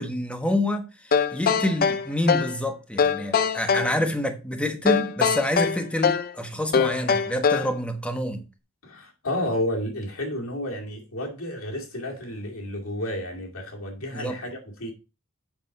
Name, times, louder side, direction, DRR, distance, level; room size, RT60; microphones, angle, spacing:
voice 1, 0.0-8.4 14.1-14.4, left 1 dB, 5° left, 1.1 m, -27 dB
sound 1, 1.1-2.6 3.0-3.9 4.9-6.3 6.7-7.7, left 6 dB, 45° left, 0.4 m, -22 dB
voice 2, 8.8-14.9, left 1 dB, 90° left, 2.4 m, -31 dB
7.8 x 5.9 x 4.1 m
head